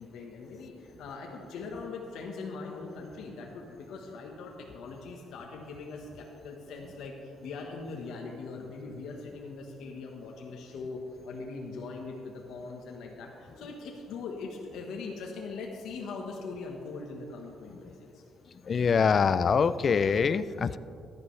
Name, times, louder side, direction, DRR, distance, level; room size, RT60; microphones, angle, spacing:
voice 1, 0.0-11.0 11.2-18.2, left 4 dB, 85° left, 0 dB, 1.2 m, -41 dB
voice 2, 18.6-20.8, left 6 dB, 45° left, 15 dB, 0.4 m, -24 dB
15.0 x 11.0 x 3.2 m, 2.6 s
cardioid pair, 90°, 0 cm